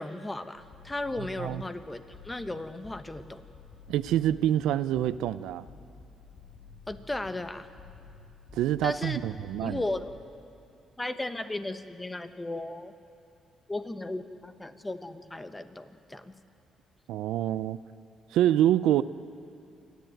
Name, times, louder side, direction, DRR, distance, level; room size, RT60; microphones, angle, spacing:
voice 1, 0.0-3.4 6.9-7.7 8.8-9.2 9.6-10.1 11.0-12.9 13.7-16.3, left 2 dB, 15° left, 10 dB, 1.1 m, -35 dB
sound 1, 0.5-10.2, left 4 dB, 55° left, 3.3 m, -51 dB
voice 2, 3.9-5.7 8.5-9.8 17.1-17.8 18.3-19.0, right 12 dB, 90° right, 15 dB, 0.5 m, -26 dB
27.5 x 10.5 x 9.2 m, 2.5 s
cardioid pair, 90°, 0 cm